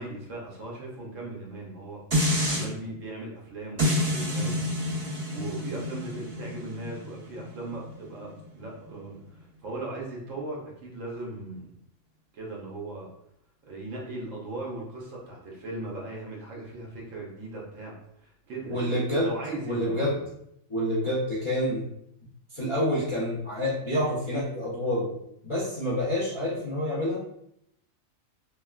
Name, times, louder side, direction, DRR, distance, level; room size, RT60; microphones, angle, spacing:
voice 1, 0.0-2.0 2.5-4.6 5.3-11.7 12.3-13.1 13.7-20.3, right 2 dB, 75° right, -2 dB, 1.2 m, -38 dB
sound 1, 2.1-2.7 3.8-8.9 9.4-9.5, left 1 dB, 40° right, 1.8 m, -29 dB
voice 2, 18.7-19.3 19.6-20.2 20.7-21.8 22.5-25.1 25.4-27.2, equal, 40° left, -9 dB, 0.4 m, -27 dB
3.4 x 2.2 x 2.3 m, 0.75 s
omnidirectional pair, 1.4 m